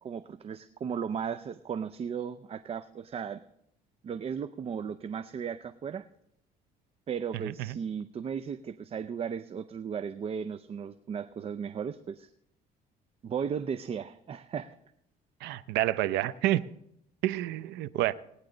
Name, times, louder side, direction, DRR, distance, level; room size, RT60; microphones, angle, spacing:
voice 1, 0.0-3.4 4.0-6.1 7.1-12.3 13.2-14.7, right 7 dB, 35° right, 0.5 m, -36 dB
voice 2, 7.5-7.8 15.4-16.6 17.2-18.1, right 14 dB, 85° right, 0.6 m, -29 dB
18.5 x 9.7 x 3.9 m
cardioid pair, 110°, 17 cm